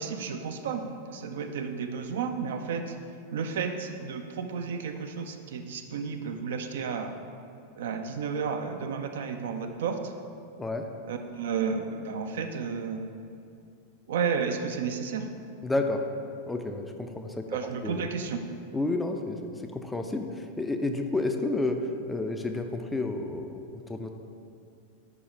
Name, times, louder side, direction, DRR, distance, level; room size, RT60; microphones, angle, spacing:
voice 1, 0.0-2.9 3.3-7.1 7.8-10.1 11.1-13.1 14.1-15.3 17.5-18.4, right 6 dB, 60° right, 6 dB, 0.4 m, -32 dB
voice 2, 15.6-16.0 16.5-18.1 18.7-19.4 19.7-24.1, left 2 dB, 10° left, 5 dB, 0.4 m, -31 dB
5.3 x 4.9 x 4.7 m, 2.5 s
figure-of-eight pair, 90°, 0 cm